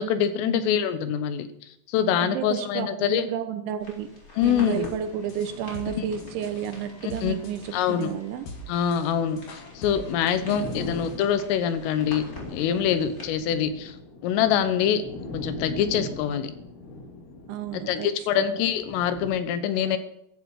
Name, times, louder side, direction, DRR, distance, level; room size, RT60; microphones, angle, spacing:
voice 1, 0.0-1.5 1.9-3.3 4.4-4.9 5.9-6.1 7.0-7.4 7.7-8.2 8.7-14.0 14.2-15.0 15.3-16.5 17.9-20.0, left 8 dB, 80° left, 11 dB, 3.6 m, -25 dB
voice 2, 2.2-4.1 4.4-8.5 10.4-10.7 17.5-18.1 18.4-18.5, right 9 dB, 75° right, 8 dB, 3.1 m, -32 dB
sound 1, 3.8-13.2, left 1 dB, 20° left, 3.8 m, -47 dB
sound 2, 4.4-11.1, left 1 dB, 50° left, 3.7 m, -44 dB
sound 3, 5.1-19.3, left 2 dB, 65° left, 5.3 m, -41 dB
15.0 x 13.5 x 4.9 m, 0.75 s
omnidirectional pair, 6.0 m